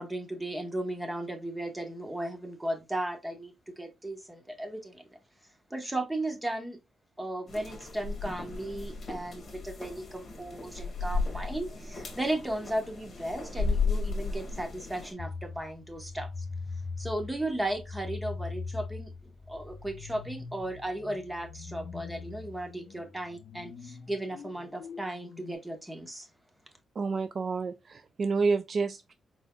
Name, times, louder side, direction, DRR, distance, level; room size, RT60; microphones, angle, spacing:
voice 1, 0.0-5.1 5.7-6.8 7.2-16.4 17.0-26.3, right 1 dB, 10° right, 1.0 m, -35 dB
sound 1, 7.5-15.1, left 4 dB, 40° left, 1.8 m, -34 dB
sound 2, 15.2-25.5, left 4 dB, 60° left, 0.5 m, -42 dB
voice 2, 27.0-29.1, right 4 dB, 40° right, 0.3 m, -29 dB
4.4 x 4.0 x 2.3 m
wide cardioid pair, 140°, 0 cm